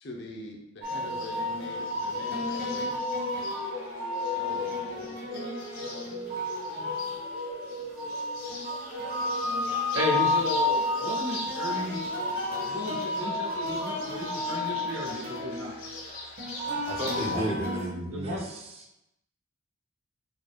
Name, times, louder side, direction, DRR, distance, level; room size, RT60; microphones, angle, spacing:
voice 1, 0.0-2.9 4.3-5.2, left 1 dB, 50° left, 1 dB, 0.7 m, -43 dB
Bird, 0.8-17.3, left 3 dB, 70° left, 1.5 m, -40 dB
sound 1, 0.8-17.9, left 2 dB, 45° right, 1.0 m, -32 dB
voice 2, 9.9-12.2 12.6-16.0 17.2-17.6 18.1-18.4, left 1 dB, 70° right, -1 dB, 1.1 m, -34 dB
voice 3, 16.9-18.8, right 1 dB, 30° right, 0 dB, 0.6 m, -33 dB
4.6 x 4.5 x 2.4 m, 0.89 s
head